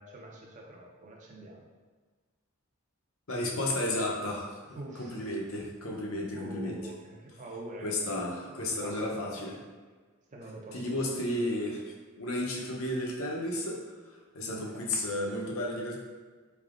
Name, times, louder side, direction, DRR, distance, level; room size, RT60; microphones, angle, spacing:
voice 1, 0.0-1.7 4.7-5.3 6.3-9.4 10.3-11.3 14.5-14.9, right 2 dB, 35° right, -2 dB, 0.6 m, -45 dB
voice 2, 3.3-4.6 5.0-6.8 7.8-9.5 10.7-13.8 14.3-16.0, left 1 dB, 60° left, -1 dB, 0.7 m, -33 dB
3.8 x 3.4 x 2.4 m, 1.4 s
head